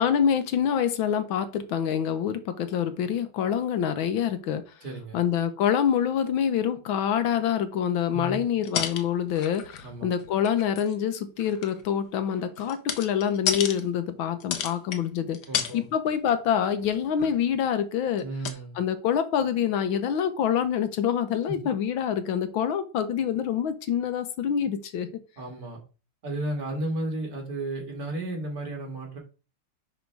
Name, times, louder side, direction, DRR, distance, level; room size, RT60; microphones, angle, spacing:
voice 1, 0.0-4.6 5.1-15.4 15.7-18.3 18.8-25.2, left 8 dB, 80° left, 1.6 m, -26 dB
voice 2, 4.8-5.2 8.1-8.5 9.8-10.1 15.5-15.9 18.2-18.8 21.5-21.6 25.4-25.8 26.2-29.2, right 2 dB, 45° right, 2.5 m, -33 dB
sound 1, 8.6-9.9 10.2-11.0 11.4-13.8 14.4-15.0 15.3-15.8 16.1-16.3 16.6-17.4 18.2-18.3 18.4-18.5, left 8 dB, 65° left, 1.3 m, -32 dB
10.5 x 3.6 x 4.6 m
omnidirectional pair, 2.2 m